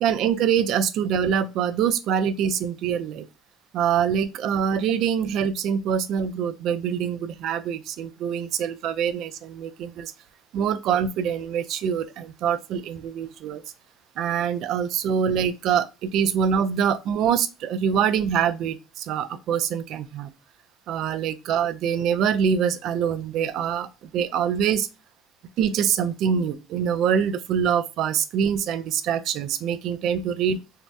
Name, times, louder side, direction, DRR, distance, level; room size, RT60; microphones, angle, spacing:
voice 1, 0.0-3.3 3.7-10.1 10.5-13.6 14.2-20.3 20.9-24.9 25.6-30.6, right 8 dB, 60° right, 0.3 m, -24 dB
2.6 x 2.0 x 3.3 m
cardioid pair, 135°, 0 cm